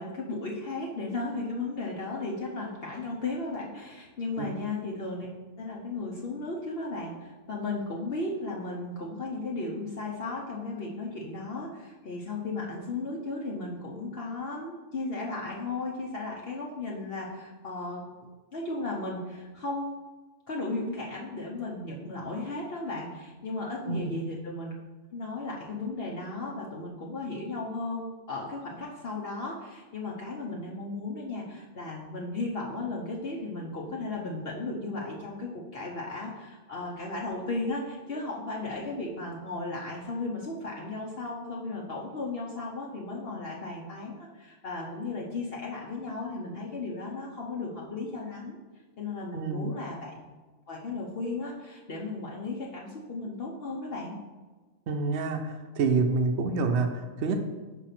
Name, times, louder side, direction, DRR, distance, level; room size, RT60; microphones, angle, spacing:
voice 1, 0.0-5.3 5.6-18.0 18.5-20.0 20.5-24.7 25.1-48.6 49.0-50.2 50.7-54.2, left 2 dB, 50° left, -3 dB, 1.0 m, -35 dB
voice 2, 49.3-49.7 54.9-57.3, right 4 dB, 65° right, 4 dB, 0.8 m, -27 dB
5.4 x 4.1 x 5.8 m, 1.3 s
omnidirectional pair, 1.4 m